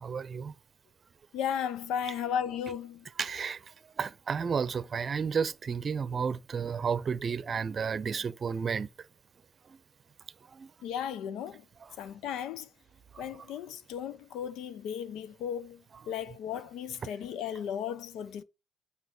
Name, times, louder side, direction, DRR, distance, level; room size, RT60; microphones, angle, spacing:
voice 1, 0.0-0.5 3.2-3.6 4.0-8.9 10.6-10.7, right 6 dB, 45° right, 0.7 m, -32 dB
voice 2, 1.3-3.0 10.8-11.6 12.0-12.7 13.2-15.8 16.1-18.4, left 8 dB, 90° left, 0.8 m, -35 dB
9.1 x 5.6 x 6.0 m
cardioid pair, 90°, 0 cm